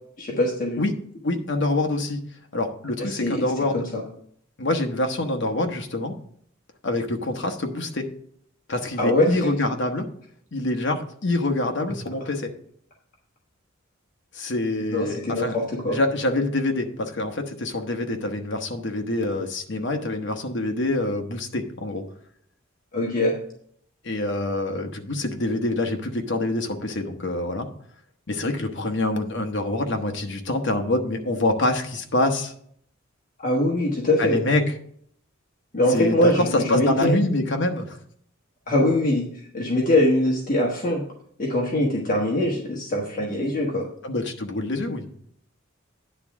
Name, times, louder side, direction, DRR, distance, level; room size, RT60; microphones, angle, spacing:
voice 1, 0.2-0.8 3.0-3.4 3.7-4.0 9.0-9.3 14.9-16.0 22.9-23.3 33.4-34.4 35.7-37.2 38.7-39.2 39.5-41.0 41.4-43.8, left 1 dB, 40° left, -2 dB, 1.3 m, -22 dB
voice 2, 1.2-2.2 2.5-3.9 4.6-6.1 6.8-8.1 8.7-10.1 10.5-12.5 14.3-15.6 15.9-22.0 24.0-27.7 28.3-32.5 34.2-34.7 35.9-38.0 44.0-45.1, left 2 dB, 60° left, 4 dB, 1.0 m, -25 dB
9.9 x 3.6 x 7.1 m, 0.66 s
head